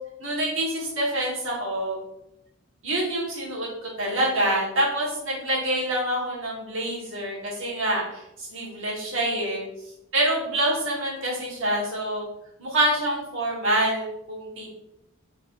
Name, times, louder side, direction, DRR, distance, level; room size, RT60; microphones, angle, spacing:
voice 1, 0.2-2.0 2.8-9.6 10.1-12.2 12.6-14.7, right 1 dB, 60° right, -4 dB, 1.3 m, -26 dB
4.2 x 3.3 x 2.5 m, 0.84 s
head